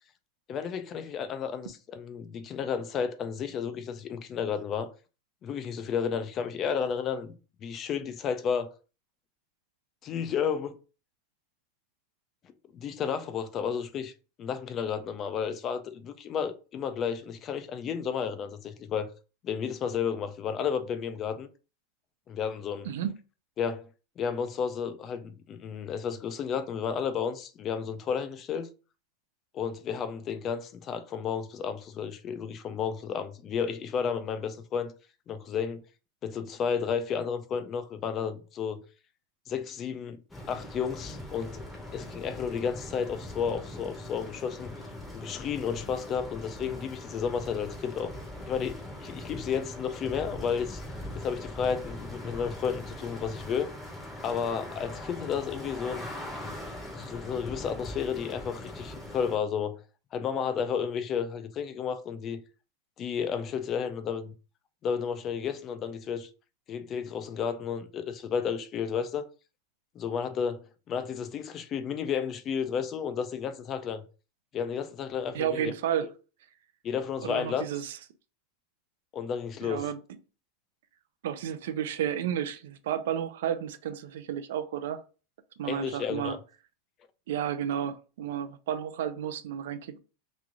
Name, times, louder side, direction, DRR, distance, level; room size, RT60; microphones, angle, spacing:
voice 1, 0.5-4.9 5.4-7.3 7.6-8.7 10.0-10.8 12.7-14.1 14.4-19.1 19.4-21.5 22.3-22.9 23.6-23.9 24.2-28.7 29.5-34.9 35.3-35.8 36.2-38.8 39.5-40.2 40.5-41.6 41.9-44.7 45.1-48.1 48.5-50.8 51.1-53.7 54.2-56.1 57.0-59.8 60.1-62.4 63.0-64.3 64.8-66.3 66.7-69.3 70.0-74.0 74.5-75.7 76.8-77.7 79.1-79.9 85.6-86.4, left 7 dB, 25° left, 0.3 m, -32 dB
voice 2, 22.8-23.2 75.3-76.1 77.2-78.0 79.6-80.0 81.2-85.0 85.6-86.4 87.3-90.0, right 9 dB, 75° right, 0.5 m, -32 dB
sound 1, 40.3-59.4, left 1 dB, 5° left, 0.8 m, -41 dB
3.1 x 2.5 x 3.7 m
supercardioid pair, 170°, 0 cm